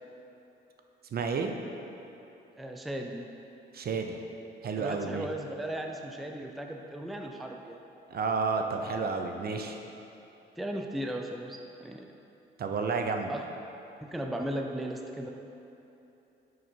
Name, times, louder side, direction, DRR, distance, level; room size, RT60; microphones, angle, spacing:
voice 1, 1.1-1.5 3.7-4.2 4.6-5.3 8.1-9.8 12.6-13.3, right 4 dB, 50° right, 4 dB, 0.6 m, -31 dB
voice 2, 2.6-3.3 4.8-7.8 10.6-12.1 13.3-13.4 14.0-15.3, right 1 dB, ahead, 3 dB, 0.4 m, -36 dB
6.2 x 5.4 x 4.5 m, 3.0 s
cardioid pair, 90°, 20 cm